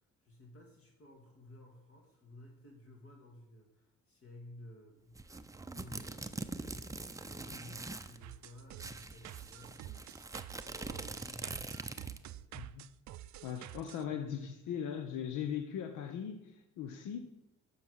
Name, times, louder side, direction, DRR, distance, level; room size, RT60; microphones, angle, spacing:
voice 1, 0.0-10.1 10.6-12.6, left 1 dB, 50° left, 0 dB, 2.0 m, -56 dB
sound 1, 5.2-8.2 8.4-8.5 8.8-12.3, right 3 dB, 10° right, 0.5 m, -43 dB
sound 2, 8.2-14.0, right 13 dB, 65° right, 0.4 m, -49 dB
voice 2, 12.5-12.9 13.4-17.2, left 8 dB, 90° left, 6 dB, 0.8 m, -39 dB
7.5 x 5.7 x 6.2 m, 0.88 s
cardioid pair, 90°, 30 cm